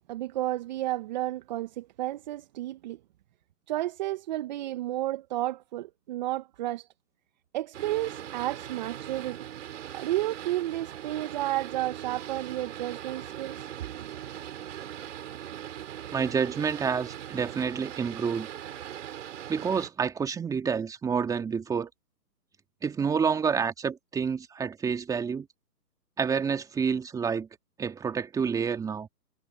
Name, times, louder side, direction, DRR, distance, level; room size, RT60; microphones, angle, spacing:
voice 1, 0.1-3.0 3.7-6.9 7.5-9.5 9.9-13.7 14.0-14.1, right 15 dB, 25° right, 1.3 m, -32 dB
Boat Water vehicle, 7.7-19.9, right 11 dB, 45° right, 4.6 m, -40 dB
voice 2, 16.1-18.5 19.5-21.9 22.8-25.5 26.2-27.5 27.8-29.1, right 6 dB, 5° right, 2.6 m, -28 dB
hypercardioid pair, 150°, 49 cm